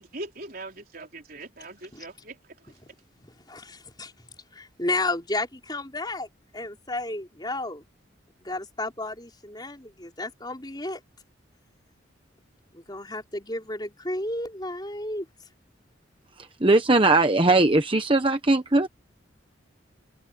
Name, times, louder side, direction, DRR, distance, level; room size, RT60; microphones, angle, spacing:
voice 1, 0.0-2.4, right 2 dB, 50° right, 4.5 m, -40 dB
voice 2, 3.2-4.1 4.5-6.3 6.5-7.8 8.4-11.0 12.7-15.3, left 2 dB, 20° left, 4.4 m, -32 dB
voice 3, 16.6-18.9, right 2 dB, 25° right, 1.1 m, -19 dB
open air
head